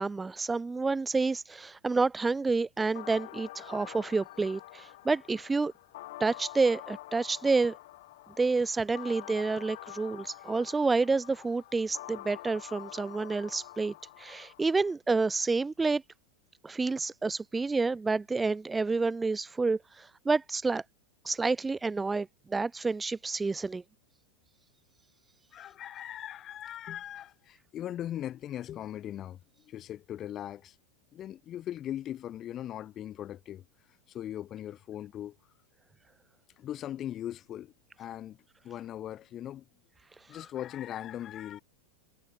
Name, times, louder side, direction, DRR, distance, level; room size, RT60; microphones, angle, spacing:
voice 1, 0.0-5.7 6.2-7.8 8.4-16.0 16.6-20.8 21.2-23.8, right 3 dB, 15° right, 0.3 m, -29 dB
sound 1, 2.9-14.9, left 18 dB, 65° left, 2.4 m, -47 dB
voice 2, 25.5-30.8 31.1-33.7 34.1-35.4 36.6-39.7 40.3-41.6, left 11 dB, 35° left, 2.2 m, -39 dB
hypercardioid pair, 100°, 0 cm